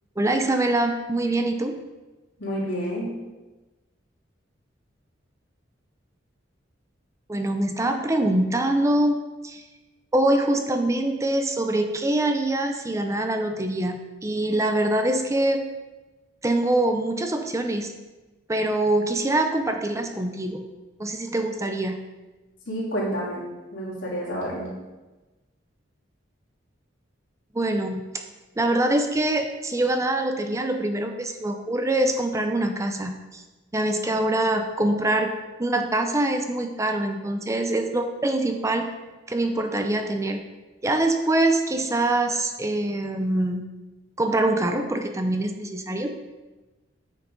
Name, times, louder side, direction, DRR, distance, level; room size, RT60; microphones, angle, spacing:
voice 1, 0.2-1.8 7.3-9.2 9.4-9.6 10.1-15.6 16.4-17.9 18.5-20.6 21.0-22.0 27.5-28.1 28.6-33.4 33.7-35.3 35.6-38.9 39.3-40.4 40.8-43.7 44.2-46.1, right 1 dB, 15° right, 5 dB, 0.5 m, -24 dB
voice 2, 2.4-3.2 22.7-24.7, equal, 75° left, -6 dB, 3.0 m, -29 dB
9.3 x 5.7 x 3.9 m, 1.2 s
head